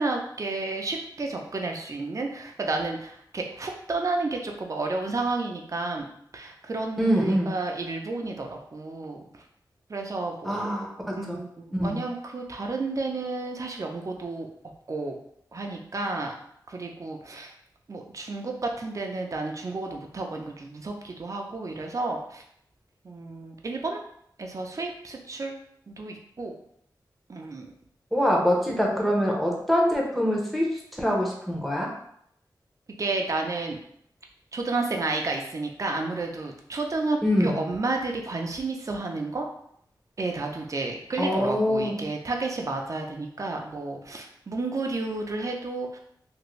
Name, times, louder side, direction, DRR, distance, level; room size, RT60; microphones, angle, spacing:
voice 1, 0.0-6.1 6.3-9.3 9.9-14.5 14.9-15.2 15.5-16.3 16.7-17.5 17.9-22.4 23.0-24.0 24.4-25.5 25.9-26.5 27.3-27.7 33.0-33.8 34.5-39.5 40.2-46.0, right 3 dB, 45° right, 2 dB, 0.5 m, -31 dB
voice 2, 7.0-7.5 10.4-11.4 11.7-12.0 28.1-31.9 37.2-37.5 41.2-42.0, equal, ahead, -2 dB, 0.7 m, -24 dB
2.6 x 2.5 x 3.0 m, 0.69 s
wide cardioid pair, 95°, 8 cm